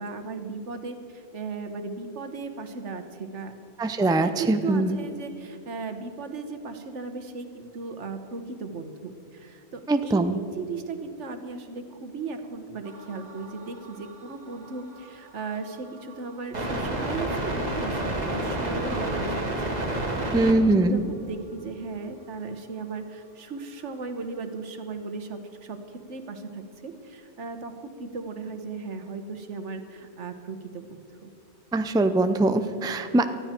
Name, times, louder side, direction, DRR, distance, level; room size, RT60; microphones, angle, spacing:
voice 1, 0.0-3.5 4.0-19.5 19.8-25.8 26.1-31.3, right 4 dB, 85° right, 8 dB, 1.5 m, -36 dB
voice 2, 3.8-5.0 9.9-10.4 20.3-21.0 31.7-33.3, right 2 dB, 5° right, 9 dB, 0.4 m, -22 dB
sound 1, 12.8-20.5 23.6-23.7, right 1 dB, 35° right, 1.8 m, -31 dB
19.0 x 13.5 x 4.5 m, 2.6 s
omnidirectional pair, 1.2 m